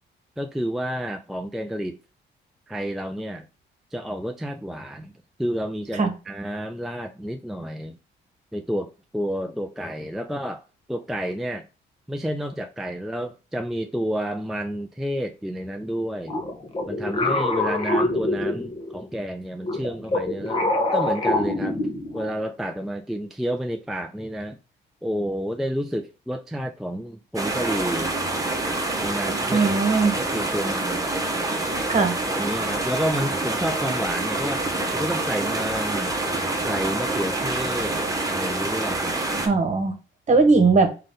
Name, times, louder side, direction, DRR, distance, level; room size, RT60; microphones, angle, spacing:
voice 1, 0.4-2.0 2.7-3.5 3.9-5.1 5.4-8.0 8.5-11.7 12.1-16.4 16.9-21.8 22.1-24.6 25.0-28.1 29.0-29.8 30.1-31.1 32.3-34.6 34.9-36.1 36.6-38.0 38.3-39.2, equal, ahead, 0.4 m, -30 dB
sound 1, 16.3-19.0 19.6-22.3, left 2 dB, 30° left, 1.0 m, -25 dB
sound 2, 27.4-39.5, right 2 dB, 15° right, 1.0 m, -26 dB
voice 2, 29.5-30.1 31.9-32.1 39.4-39.9 40.3-40.9, right 4 dB, 35° right, 1.2 m, -19 dB
3.8 x 3.3 x 3.7 m
cardioid pair, 90°, 20 cm